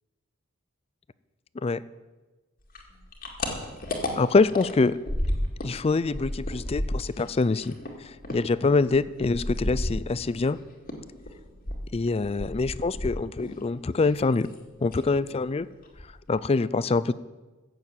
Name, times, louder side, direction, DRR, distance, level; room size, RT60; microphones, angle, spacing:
sound 1, 2.7-5.8 6.0-10.5 10.9-13.6 13.9-14.6 14.9-15.1 15.5-15.6 15.8-16.4, left 1 dB, 45° left, 2.1 m, -32 dB
voice 1, 4.1-5.0 5.6-7.8 8.3-10.6 11.9-14.5 14.8-15.7 16.3-17.1, left 3 dB, 30° left, 18 dB, 0.4 m, -24 dB
15.5 x 7.0 x 8.2 m, 1.2 s
head